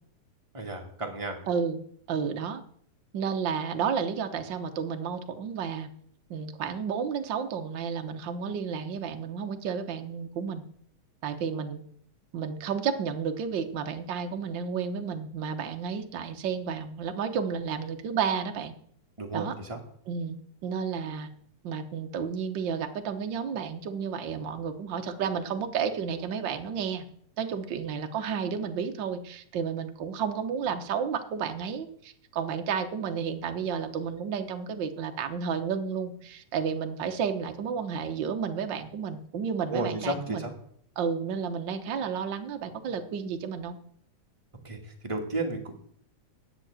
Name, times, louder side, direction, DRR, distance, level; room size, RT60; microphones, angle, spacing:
voice 1, 0.5-1.4 19.2-19.8 39.7-40.5 44.6-45.7, right 2 dB, 15° right, 1 dB, 1.6 m, -33 dB
voice 2, 1.5-1.8 2.1-2.6 3.1-5.9 6.3-10.6 11.2-11.8 12.3-18.7 19.3-19.5 20.1-20.4 20.6-21.3 21.6-27.0 27.4-40.5 41.0-43.8, right 6 dB, 60° right, 6 dB, 1.3 m, -31 dB
10.5 x 7.8 x 8.8 m, 0.64 s
omnidirectional pair, 3.5 m